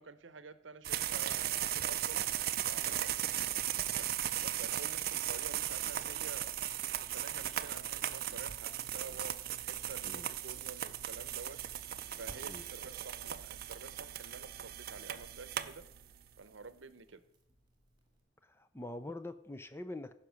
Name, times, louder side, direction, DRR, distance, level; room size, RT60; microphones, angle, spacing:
voice 1, 0.0-2.2 2.6-3.1 3.9-4.1 4.4-6.5 6.9-11.6 12.2-15.8 16.4-17.2, right 4 dB, 75° right, 13 dB, 0.8 m, -49 dB
sound 1, 0.8-16.3, right 11 dB, 50° right, 0.5 m, -37 dB
sound 2, 6.0-6.3 6.7-7.0 7.5-7.8 8.3-8.5 9.0-10.0 10.6-10.8 11.1-11.6 12.2-12.4 13.0-13.2, equal, 85° left, 3.5 m, -64 dB
Crackle, 11.5-18.2, right 1 dB, 25° right, 2.2 m, -62 dB
voice 2, 18.4-20.1, left 1 dB, 10° left, 11 dB, 0.5 m, -44 dB
15.5 x 5.8 x 6.3 m, 0.76 s
head